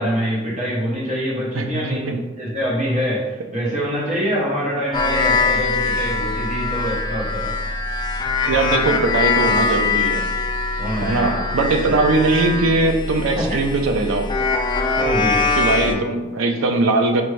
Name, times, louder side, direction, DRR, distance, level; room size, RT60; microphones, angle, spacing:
voice 1, 0.0-7.5 10.8-11.6 11.8-12.0 13.4-13.6 15.0-15.5 15.8-16.0, equal, 40° right, -4 dB, 0.8 m, -25 dB
voice 2, 1.5-2.1 8.5-10.2 11.0-14.3 15.5-17.2, right 2 dB, 90° right, 5 dB, 0.5 m, -20 dB
sound 1, 4.9-16.0, left 3 dB, 25° left, 0.3 m, -22 dB
4.4 x 2.5 x 3.1 m, 1.1 s
head